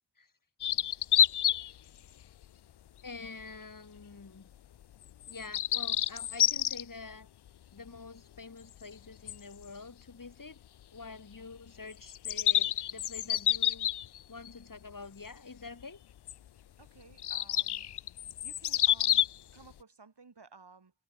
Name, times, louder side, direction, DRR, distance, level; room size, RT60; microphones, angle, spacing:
sound 1, 0.6-1.7 2.2-2.4 3.3-3.4 5.2-6.8 9.3-9.4 9.6-9.7 12.1-14.5 16.3-16.4 17.2-19.4, left 11 dB, 65° left, 0.5 m, -28 dB
voice 1, 3.0-4.5 5.3-7.3 7.7-10.6 10.9-13.9 14.3-16.0, left 4 dB, 45° left, 2.5 m, -47 dB
voice 2, 16.8-17.9 18.4-20.9, right 4 dB, 65° right, 7.5 m, -56 dB
wide cardioid pair, 70°, 43 cm